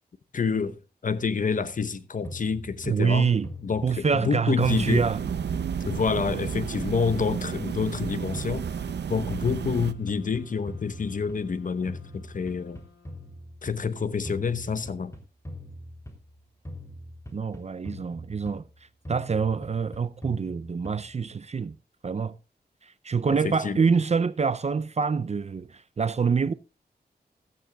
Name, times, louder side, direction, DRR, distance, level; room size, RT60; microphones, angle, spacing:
voice 1, 0.3-3.3 3.6-5.1 5.9-8.7 9.1-12.8 13.6-15.1 23.3-23.9, left 5 dB, 50° left, 0.9 m, -28 dB
sound 1, 2.2-4.3 4.6-6.8 7.1-9.2 9.5-11.6 11.9-13.8 14.2-16.4 16.6-18.7 19.0-21.2, left 1 dB, 15° left, 3.1 m, -42 dB
voice 2, 2.9-3.5 3.8-5.2 17.3-18.6 19.1-21.8 22.0-22.3 22.8-26.5, right 5 dB, 40° right, 0.5 m, -26 dB
sound 2, 4.6-9.9, right 7 dB, 85° right, 0.6 m, -32 dB
sound 3, 9.8-13.7, left 4 dB, 75° left, 5.3 m, -58 dB
15.5 x 13.0 x 2.3 m
wide cardioid pair, 95°, 17 cm